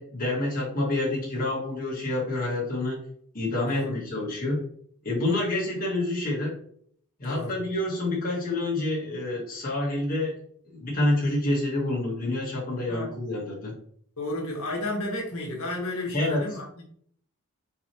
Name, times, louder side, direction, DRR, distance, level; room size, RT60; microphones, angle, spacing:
voice 1, 0.0-3.0 3.3-4.6 5.0-6.5 7.2-10.4 10.7-13.7 16.1-16.6, left 2 dB, 40° left, -5 dB, 1.4 m, -28 dB
voice 2, 7.2-7.6 12.9-13.1 14.2-16.7, left 1 dB, 70° left, -2 dB, 1.5 m, -32 dB
4.4 x 3.9 x 3.0 m, 0.62 s
head